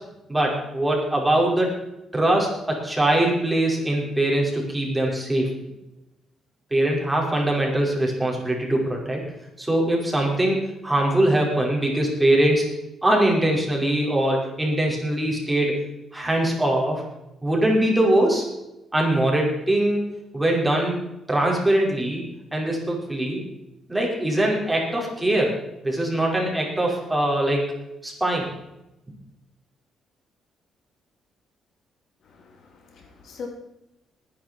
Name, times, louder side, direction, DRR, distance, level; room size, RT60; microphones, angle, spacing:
voice 1, 0.3-1.7 2.1-5.5 6.7-9.2 9.6-12.7 13.0-15.8 16.1-17.0 17.4-18.5 18.9-20.1 20.3-21.0 21.3-23.4 23.9-27.7 28.0-28.5, right 1 dB, 10° right, -2 dB, 5.4 m, -22 dB
voice 2, 32.2-33.5, left 5 dB, 65° left, 2 dB, 3.3 m, -41 dB
19.5 x 10.5 x 4.6 m, 0.91 s
cardioid pair, 90°, 0 cm